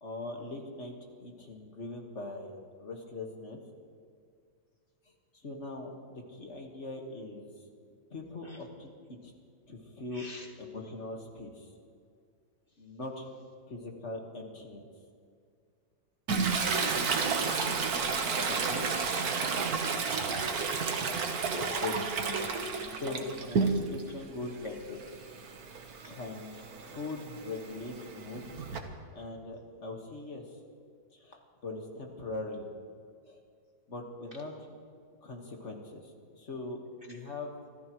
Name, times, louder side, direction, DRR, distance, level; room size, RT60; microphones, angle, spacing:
voice 1, 0.0-3.6 5.3-7.5 8.1-8.9 9.2-9.3 9.7-10.3 10.6-11.7 12.8-13.3 13.7-14.8 18.4-18.9 21.8-22.0 23.0-25.0 26.0-28.6 29.1-30.6 31.1-32.7 33.3-33.4 33.9-34.5 35.2-37.7, left 2 dB, 45° left, 1 dB, 1.9 m, -41 dB
voice 2, 10.1-10.5 20.1-20.6 21.0-21.7 26.0-26.2 37.1-37.2, right 1 dB, 40° right, 2 dB, 0.9 m, -44 dB
Toilet flush, 16.3-24.1 24.5-28.8, right 5 dB, 60° right, 1.6 m, -32 dB
26.5 x 14.0 x 3.1 m, 2.2 s
omnidirectional pair, 1.9 m